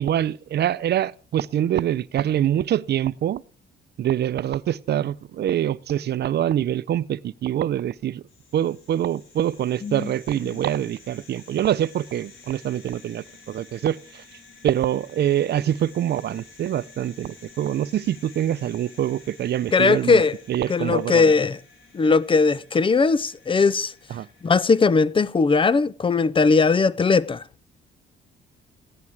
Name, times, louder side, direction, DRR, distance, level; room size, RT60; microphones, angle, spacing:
voice 1, 0.0-3.4 4.0-8.2 8.5-14.2 14.6-20.2 20.5-21.3 24.1-24.3, right 11 dB, 60° right, 0.6 m, -25 dB
sound 1, 8.3-24.9, left 4 dB, 80° left, 4.3 m, -51 dB
voice 2, 9.8-10.1 10.5-10.6 19.7-20.4 20.7-21.6 21.9-23.9 24.4-27.4, left 4 dB, 25° left, 0.6 m, -19 dB
15.5 x 11.0 x 4.7 m
cardioid pair, 90°, 20 cm